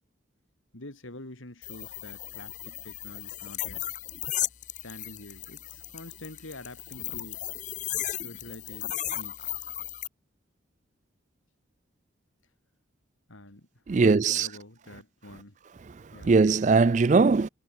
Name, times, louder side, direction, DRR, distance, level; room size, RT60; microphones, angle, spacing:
voice 1, 0.7-3.8 4.8-7.4 8.2-9.7 13.3-15.5 16.1-16.3, left 1 dB, 85° left, 3.6 m, -46 dB
sound 1, 1.6-10.1, left 13 dB, 40° left, 0.9 m, -36 dB
voice 2, 13.9-14.5 16.2-17.5, right 4 dB, 35° right, 0.3 m, -20 dB
head